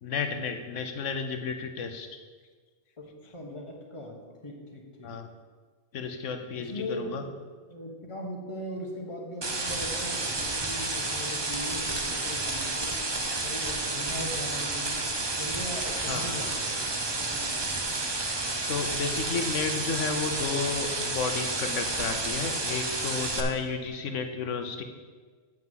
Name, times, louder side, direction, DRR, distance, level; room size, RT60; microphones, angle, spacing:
voice 1, 0.0-2.2 5.0-5.3 5.9-7.2 16.1-16.6 18.7-24.8, left 5 dB, 70° left, 7 dB, 1.1 m, -32 dB
voice 2, 3.0-5.2 6.6-7.3 7.6-13.0 13.3-15.1 15.4-17.7, left 1 dB, 25° left, 0 dB, 1.4 m, -39 dB
sound 1, 9.4-23.4, right 2 dB, 25° right, 0.6 m, -31 dB
7.5 x 5.8 x 7.5 m, 1.5 s
omnidirectional pair, 1.4 m